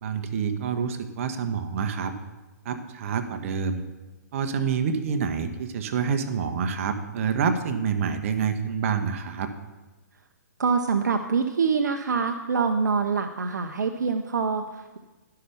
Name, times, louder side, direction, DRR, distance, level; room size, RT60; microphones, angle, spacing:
voice 1, 0.0-2.1 2.6-3.8 4.3-9.5, right 6 dB, 50° right, 8 dB, 1.0 m, -27 dB
voice 2, 10.6-15.0, right 5 dB, 75° right, 6 dB, 0.7 m, -25 dB
11.5 x 5.8 x 6.8 m, 1.2 s
hypercardioid pair, 135°, 10 cm